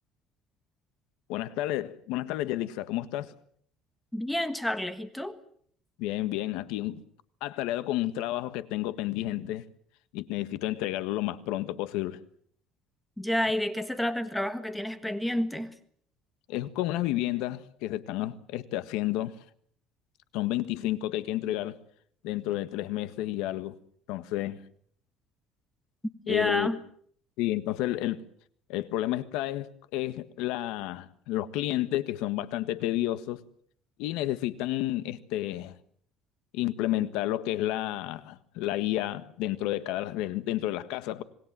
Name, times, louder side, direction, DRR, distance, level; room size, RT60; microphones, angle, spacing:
voice 1, 1.3-3.3 6.0-7.0 7.4-9.6 10.1-12.2 16.5-19.3 20.3-21.8 22.2-23.7 24.1-24.6 26.3-26.8 27.4-28.2 28.7-33.4 34.0-35.7 36.5-41.2, left 14 dB, 85° left, 1.5 m, -31 dB
voice 2, 4.1-5.3 13.2-15.7 26.3-26.8, left 1 dB, 5° left, 1.5 m, -30 dB
26.5 x 20.0 x 7.6 m
cardioid pair, 150°, 0 cm